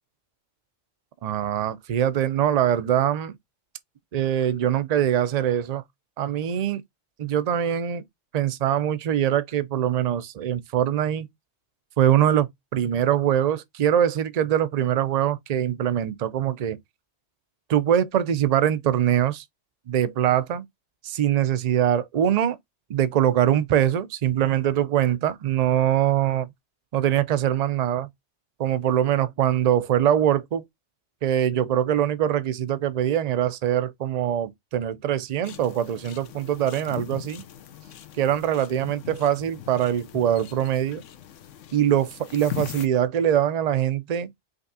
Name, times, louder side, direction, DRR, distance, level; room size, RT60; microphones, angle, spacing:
voice 1, 1.2-3.3 4.1-5.8 6.2-6.8 7.2-8.0 8.3-11.3 12.0-16.8 17.7-19.4 19.9-20.7 21.0-22.6 22.9-26.5 26.9-28.1 28.6-30.6 31.2-37.4 38.2-41.0 41.7-44.3, right 10 dB, 50° right, 0.4 m, -23 dB
sound 1, 35.4-42.9, left 11 dB, 85° left, 1.0 m, -40 dB
5.1 x 3.3 x 2.6 m
omnidirectional pair, 1.2 m